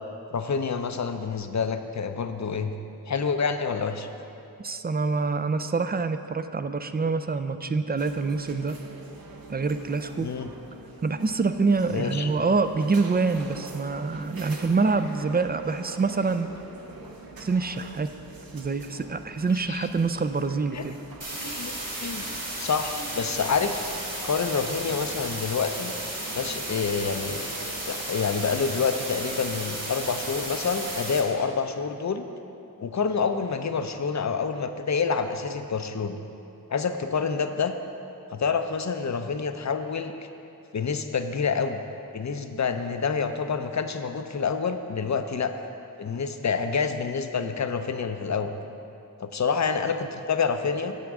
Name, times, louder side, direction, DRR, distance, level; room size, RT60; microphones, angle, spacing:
voice 1, 0.3-2.8 3.1-4.1 10.2-10.5 11.9-12.3 19.7-19.9 20.7-20.8 21.4-21.7 22.0-22.2 22.6-23.9 24.2-25.9 26.3-27.4 27.9-32.3 32.8-36.2 36.7-37.7 38.3-40.1 40.7-41.8 42.1-45.5 46.0-48.5 49.2-51.0, left 5 dB, 50° left, 8 dB, 0.6 m, -27 dB
voice 2, 4.6-8.8 9.5-10.3 11.0-16.5 17.4-18.1 18.5-21.0, right 4 dB, 25° right, 10 dB, 0.4 m, -26 dB
sound 1, 8.0-27.8, right 2 dB, 70° right, 0.8 m, -44 dB
sound 2, 21.2-31.2, right 1 dB, 40° right, 1.8 m, -34 dB
9.3 x 7.6 x 3.6 m, 2.7 s
wide cardioid pair, 50°, 37 cm